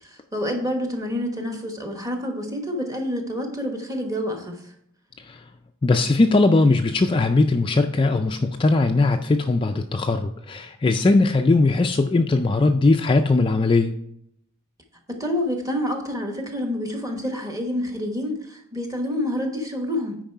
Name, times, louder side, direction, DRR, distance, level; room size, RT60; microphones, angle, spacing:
voice 1, 0.0-4.7 15.1-20.2, left 1 dB, 15° right, 3 dB, 1.1 m, -28 dB
voice 2, 5.8-13.9, left 3 dB, 25° left, 5 dB, 0.3 m, -19 dB
9.1 x 4.8 x 4.5 m, 0.73 s
head